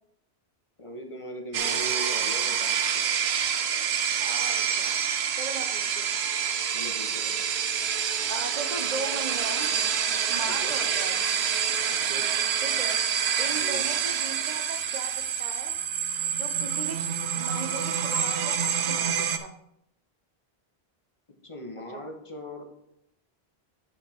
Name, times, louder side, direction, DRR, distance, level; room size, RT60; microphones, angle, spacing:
voice 1, 0.8-3.1 6.7-7.5 10.5-10.7 11.9-12.3 13.6-13.9 21.4-22.8, equal, 30° left, 2 dB, 1.1 m, -40 dB
sound 1, 1.5-19.4, right 8 dB, 85° right, 1.0 m, -27 dB
voice 2, 4.2-5.0 5.3-6.1 8.3-9.7 10.3-11.2 12.6-13.0 13.4-15.8 16.3-19.6 21.9-22.0, right 4 dB, 45° right, 7 dB, 0.8 m, -38 dB
9.9 x 5.0 x 4.4 m, 0.79 s
omnidirectional pair, 1.0 m